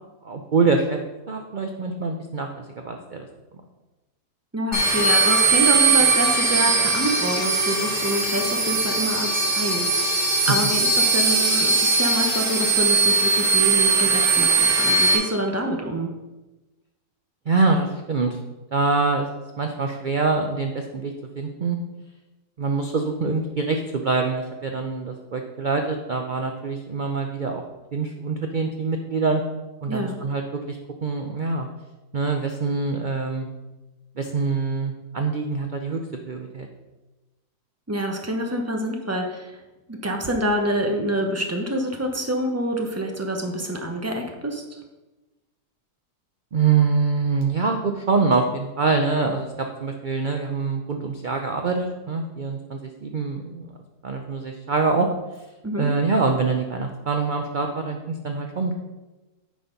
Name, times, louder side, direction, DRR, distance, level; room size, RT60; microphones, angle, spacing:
voice 1, 0.2-1.0 1.3-3.3 17.5-18.4 18.7-19.3 19.6-21.8 22.6-27.6 27.9-29.4 29.8-31.7 32.1-33.5 34.2-36.0 36.3-36.7 46.5-53.7 54.0-55.1 55.8-58.8, right 4 dB, 85° right, 4 dB, 0.4 m, -24 dB
voice 2, 4.5-16.1 29.9-30.2 37.9-39.6 39.9-44.8 55.6-55.9, right 1 dB, 15° right, 2 dB, 0.5 m, -27 dB
sound 1, 4.7-15.1, right 3 dB, 25° left, 3.2 m, -20 dB
9.3 x 4.3 x 5.2 m, 1.1 s
omnidirectional pair, 1.7 m